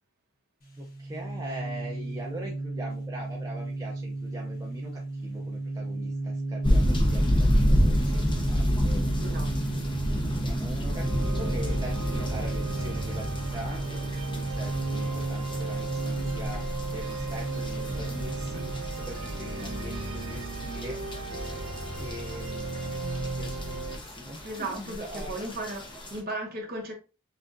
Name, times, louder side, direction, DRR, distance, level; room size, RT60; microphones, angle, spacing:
sound 1, 0.6-18.9, right 2 dB, 40° left, 1.2 m, -34 dB
voice 1, 0.8-9.4 10.2-21.0 22.0-25.5, equal, 15° right, 0.6 m, -42 dB
sound 2, 6.6-26.2, equal, 25° left, 0.8 m, -30 dB
voice 2, 9.2-9.5 24.4-26.9, right 2 dB, 45° right, 1.3 m, -36 dB
sound 3, 10.9-24.0, right 2 dB, 85° right, 1.2 m, -36 dB
5.8 x 2.5 x 2.6 m
head